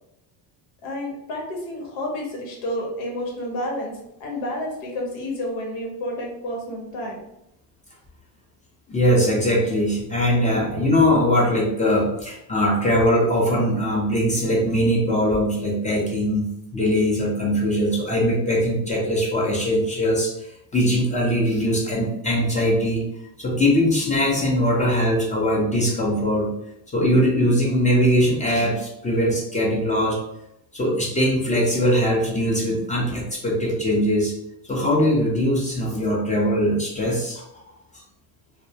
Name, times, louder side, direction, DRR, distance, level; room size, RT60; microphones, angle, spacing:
voice 1, 0.8-7.2, left 1 dB, 85° left, -1 dB, 1.0 m, -30 dB
voice 2, 8.9-20.5 20.7-23.1 23.4-26.5 26.9-30.2 30.7-34.3 34.7-37.4, equal, 15° left, -3 dB, 0.4 m, -21 dB
2.2 x 2.0 x 2.6 m, 0.81 s
cardioid pair, 125°, 46 cm